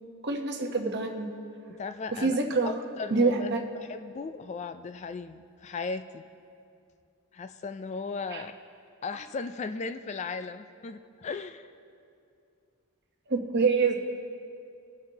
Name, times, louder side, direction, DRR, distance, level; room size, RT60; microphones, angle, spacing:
voice 1, 0.2-1.3 2.1-2.7 3.1-3.6 8.3-8.4 13.3-14.0, right 4 dB, 50° right, 3 dB, 1.0 m, -26 dB
voice 2, 1.7-2.4 2.6-3.5 3.7-6.3 7.3-8.5 9.0-11.7, left 4 dB, 30° left, 10 dB, 0.3 m, -37 dB
21.5 x 7.8 x 2.8 m, 2.5 s
head